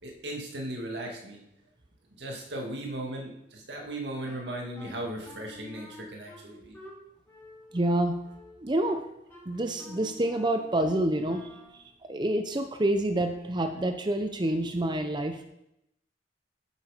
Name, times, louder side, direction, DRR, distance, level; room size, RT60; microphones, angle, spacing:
voice 1, 0.0-1.4 2.2-6.8 12.9-13.2, right 1 dB, 70° right, 1 dB, 2.1 m, -37 dB
Wind instrument woodwind instrument, 4.2-11.8, left 1 dB, 10° left, 3.4 m, -49 dB
voice 2, 7.7-8.1 8.6-9.0 9.5-11.8 12.1-15.4, right 1 dB, 25° right, 6 dB, 0.7 m, -28 dB
9.3 x 7.9 x 5.0 m, 0.81 s
head